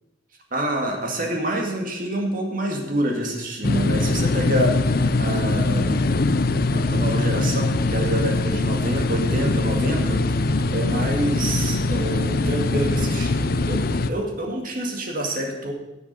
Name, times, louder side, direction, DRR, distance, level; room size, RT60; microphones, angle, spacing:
voice 1, 0.5-4.8 5.2-6.0 6.7-10.2 10.7-15.7, right 1 dB, 50° right, 1 dB, 2.2 m, -27 dB
sound 1, 3.6-14.1, left 2 dB, 55° left, 0.6 m, -22 dB
17.5 x 7.3 x 5.4 m, 0.94 s
head